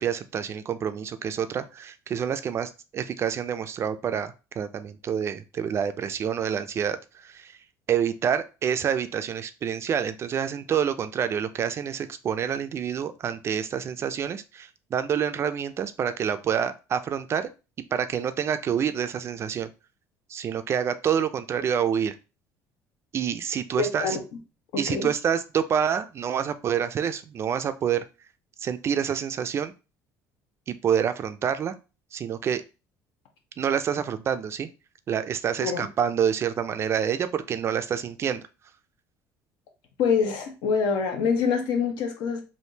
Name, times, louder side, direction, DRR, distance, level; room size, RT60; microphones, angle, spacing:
voice 1, 0.0-7.6 7.9-17.5 17.9-19.7 20.3-22.1 23.1-24.2 24.8-28.1 28.6-29.7 30.7-31.7 32.1-32.6 33.6-34.7 35.1-38.5, right 8 dB, 35° right, 11 dB, 0.3 m, -27 dB
voice 2, 23.8-24.2 24.9-25.1 35.6-35.9 40.0-42.4, left 6 dB, 75° left, 4 dB, 0.9 m, -25 dB
3.5 x 2.6 x 2.7 m, 0.31 s
cardioid pair, 120°, 7 cm